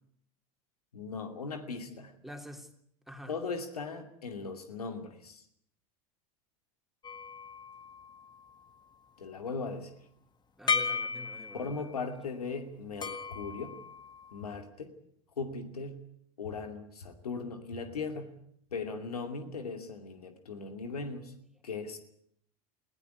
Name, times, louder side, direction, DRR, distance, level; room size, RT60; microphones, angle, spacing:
voice 1, 0.9-2.1 3.3-5.4 9.2-10.0 11.5-13.8 14.3-15.0 15.4-16.0 16.4-18.4 18.7-21.3 21.6-22.0, left 4 dB, 90° left, 6 dB, 2.6 m, -38 dB
voice 2, 2.2-2.7 3.1-3.3 10.6-12.1, equal, ahead, 3 dB, 3.1 m, -47 dB
sound 1, 7.0-8.7 10.7-11.9 13.0-14.5, left 5 dB, 25° left, 1.7 m, -36 dB
20.0 x 16.5 x 9.7 m, 0.70 s
hypercardioid pair, 90°, 19 cm